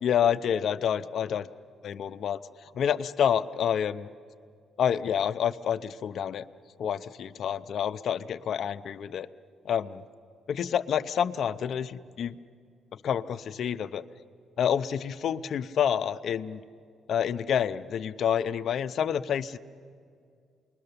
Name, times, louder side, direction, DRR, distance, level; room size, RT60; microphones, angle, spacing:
voice 1, 0.0-1.5 1.8-4.1 4.8-6.4 6.8-9.3 9.6-10.0 10.5-12.4 12.9-14.0 14.6-16.6 17.1-19.6, left 8 dB, 65° left, 11 dB, 0.7 m, -28 dB
28.0 x 21.0 x 6.9 m, 2.2 s
cardioid pair, 90°, 0 cm